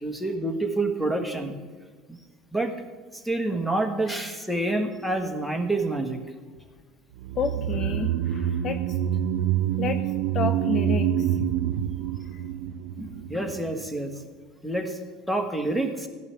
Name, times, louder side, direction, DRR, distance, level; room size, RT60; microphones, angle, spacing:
voice 1, 0.0-1.6 2.1-2.2 2.5-2.7 3.1-6.2 13.0-14.1 14.6-15.0 15.3-16.1, right 2 dB, ahead, 5 dB, 1.4 m, -27 dB
sound 1, 7.2-13.6 13.9-14.0, right 10 dB, 85° right, 0.4 m, -26 dB
voice 2, 7.4-8.8 9.8-10.0 10.3-11.3, left 6 dB, 40° left, 10 dB, 0.7 m, -29 dB
15.5 x 11.0 x 3.4 m, 1.4 s
supercardioid pair, 120°, 0 cm